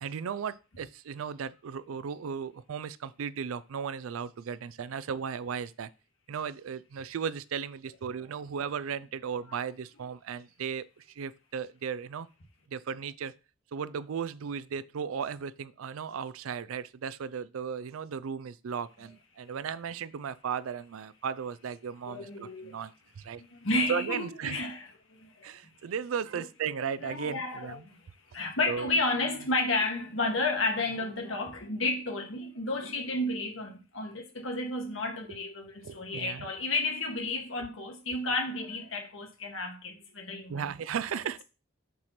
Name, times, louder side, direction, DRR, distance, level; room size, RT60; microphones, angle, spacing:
voice 1, 0.0-5.9 6.3-12.3 12.7-13.3 13.7-23.4 23.9-24.6 25.4-27.8 28.7-28.9 35.8-36.4 40.5-41.4, right 7 dB, 90° right, 0.4 m, -36 dB
voice 2, 9.2-9.6 22.1-22.8 23.4-25.5 26.3-26.5 27.0-40.7, left 2 dB, 75° left, 1.7 m, -32 dB
5.8 x 4.7 x 4.2 m
head